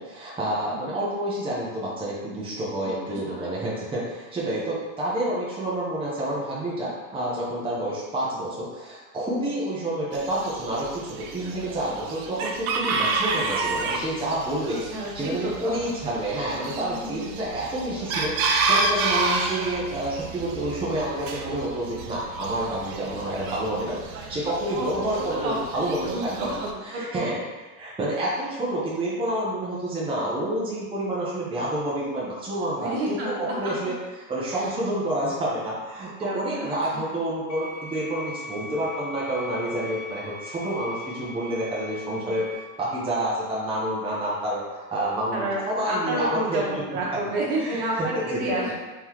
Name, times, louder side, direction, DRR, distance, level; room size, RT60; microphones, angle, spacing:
voice 1, 0.0-14.8 15.1-26.6 26.9-27.4 27.8-33.9 34.3-42.5 42.8-44.6 44.9-46.8 47.3-48.6, right 1 dB, 15° right, -7 dB, 0.8 m, -29 dB
voice 2, 2.8-3.8 13.0-13.1 14.6-15.8 16.7-17.4 24.7-25.5 25.9-27.3 32.6-33.5 34.5-34.7 36.0-37.0 39.7-39.8 42.1-42.3 45.0-48.8, right 1 dB, 60° right, -4 dB, 1.4 m, -31 dB
Chicken rooster, 10.1-26.7, right 3 dB, 85° right, 0.7 m, -30 dB
sound 1, 37.5-42.6, left 1 dB, 45° left, 0.6 m, -40 dB
3.8 x 3.5 x 3.0 m, 1.2 s
supercardioid pair, 135°, 42 cm